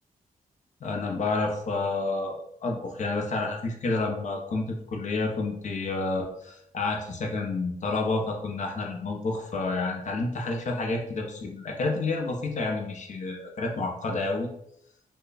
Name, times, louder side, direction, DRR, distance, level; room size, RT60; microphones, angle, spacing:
voice 1, 0.8-14.5, left 3 dB, 55° left, 1 dB, 0.6 m, -29 dB
3.3 x 2.1 x 3.9 m, 0.75 s
wide cardioid pair, 170°, 15 cm